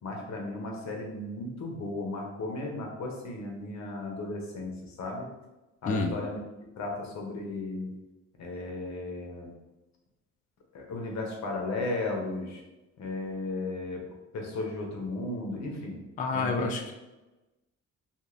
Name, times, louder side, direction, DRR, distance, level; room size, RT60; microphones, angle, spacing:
voice 1, 0.0-5.3 5.8-6.4 6.8-7.9 8.4-9.5 10.7-12.6 13.0-16.0 16.3-16.7, left 2 dB, 65° left, 1 dB, 0.8 m, -35 dB
voice 2, 16.2-16.9, left 3 dB, 30° left, 3 dB, 0.3 m, -28 dB
2.5 x 2.4 x 3.0 m, 1.1 s
cardioid pair, 90°, 30 cm